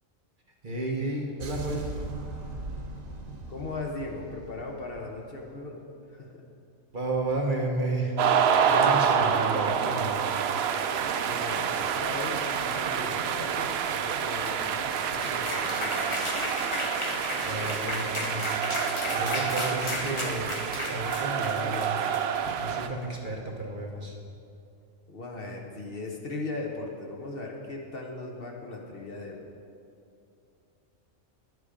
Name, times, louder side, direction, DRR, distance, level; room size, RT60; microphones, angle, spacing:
voice 1, 0.6-1.8 6.9-8.3 8.6-10.3 17.4-20.6 20.9-22.0 22.6-24.2, right 2 dB, 40° right, -1 dB, 1.2 m, -32 dB
sound 1, 1.4-5.5, right 2 dB, 90° right, 1.4 m, -39 dB
voice 2, 3.5-5.8 6.1-6.4 11.2-17.0 25.1-29.4, left 2 dB, 50° left, 0 dB, 1.1 m, -38 dB
sound 2, 8.2-22.9, right 7 dB, 65° right, 0.7 m, -28 dB
sound 3, 14.5-22.8, left 2 dB, 25° left, 0.9 m, -35 dB
10.0 x 8.1 x 5.0 m, 2.5 s
omnidirectional pair, 1.3 m